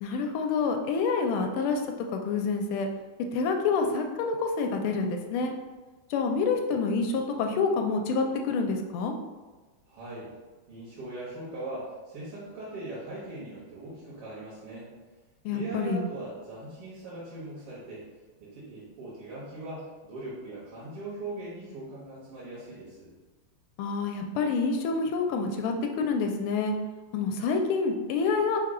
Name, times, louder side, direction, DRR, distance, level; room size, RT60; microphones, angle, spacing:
voice 1, 0.0-1.8 2.1-2.9 3.3-5.5 6.1-9.1 15.4-16.0 23.8-26.7 27.1-28.6, left 4 dB, 80° left, 4 dB, 1.4 m, -27 dB
voice 2, 9.9-10.3 10.7-14.9 15.5-18.0 18.4-23.1, right 2 dB, 85° right, -8 dB, 2.1 m, -40 dB
4.5 x 2.2 x 4.8 m, 1.3 s
omnidirectional pair, 2.4 m